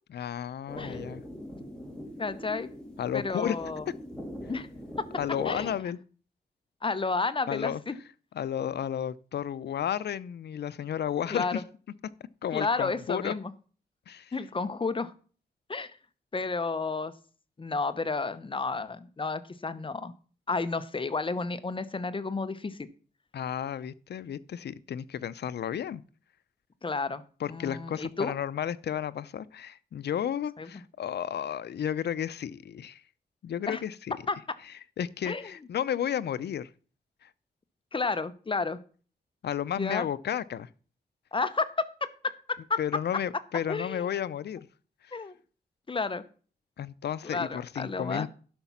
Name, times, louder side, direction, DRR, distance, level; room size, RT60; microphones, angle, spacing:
voice 1, 0.1-1.2 3.0-3.6 5.2-6.0 7.5-7.8 8.4-11.6 12.4-13.3 14.1-14.3 23.3-26.0 27.4-33.0 33.4-34.2 35.0-36.7 37.2-37.3 39.4-40.7 42.8-44.6 45.1-45.2 46.8-48.3, left 9 dB, 75° left, 0.6 m, -32 dB
sound 1, 0.7-5.8, equal, 5° left, 3.0 m, -42 dB
voice 2, 2.2-2.7 3.1-3.8 4.5-4.7 5.0-5.1 5.4-5.7 6.8-8.0 11.3-11.5 12.5-13.5 14.3-15.1 15.7-15.9 16.3-17.1 17.6-20.1 20.5-22.9 26.8-28.3 30.6-30.7 33.7-33.8 34.3-34.4 35.2-35.5 37.9-38.8 39.7-40.1 41.3-41.9 42.2-42.8 43.7-44.2 45.1-45.3 45.9-46.2 47.2-48.3, left 4 dB, 30° left, 0.8 m, -31 dB
11.5 x 5.9 x 5.6 m
wide cardioid pair, 100°, 17 cm